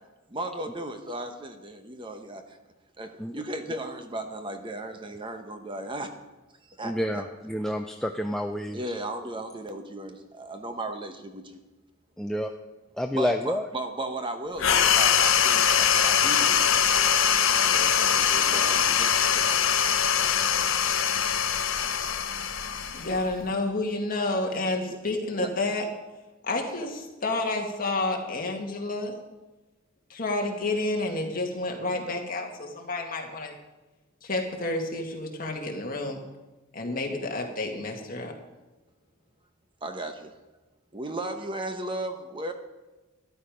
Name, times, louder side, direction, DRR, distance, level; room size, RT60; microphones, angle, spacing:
voice 1, 0.3-2.6 3.0-6.1 6.7-7.2 8.7-11.6 13.1-16.7 17.6-19.5 24.9-25.0 25.4-25.5 39.8-40.3 40.9-42.5, right 1 dB, 25° right, 6 dB, 0.9 m, -36 dB
voice 2, 6.8-8.8 12.2-12.5 13.0-13.6, equal, ahead, 4 dB, 0.4 m, -29 dB
sound 1, 14.6-23.5, left 8 dB, 70° left, 0.8 m, -23 dB
voice 3, 22.9-25.8 26.4-29.1 30.1-33.5 34.2-36.2 36.7-38.3, left 2 dB, 40° left, 1 dB, 2.0 m, -30 dB
13.0 x 12.0 x 5.1 m, 1.1 s
head